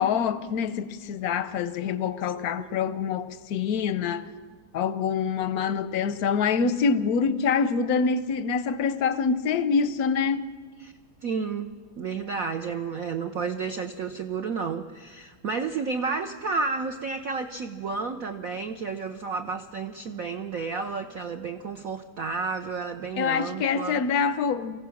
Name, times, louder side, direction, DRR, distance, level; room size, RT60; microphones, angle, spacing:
voice 1, 0.0-4.3 4.7-10.4 23.2-24.8, left 6 dB, 65° left, 0.9 m, -25 dB
voice 2, 11.2-24.0, right 5 dB, 70° right, 0.8 m, -31 dB
24.5 x 16.0 x 7.1 m
omnidirectional pair, 2.4 m